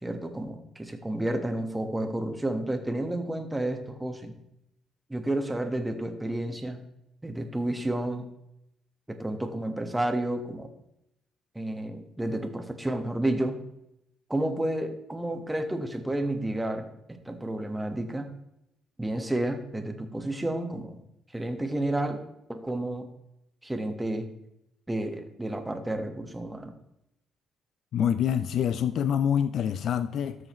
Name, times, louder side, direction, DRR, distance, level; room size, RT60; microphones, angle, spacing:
voice 1, 0.0-4.3 5.1-6.8 7.2-8.3 9.1-10.7 11.5-13.6 14.3-16.9 17.3-18.3 19.0-21.0 21.3-22.2 22.5-23.1 23.6-24.3 24.9-26.7, right 1 dB, 10° right, 5 dB, 1.2 m, -31 dB
voice 2, 27.9-30.4, left 8 dB, 70° left, 13 dB, 0.4 m, -26 dB
13.0 x 6.4 x 3.1 m, 0.80 s
cardioid pair, 90°, 0 cm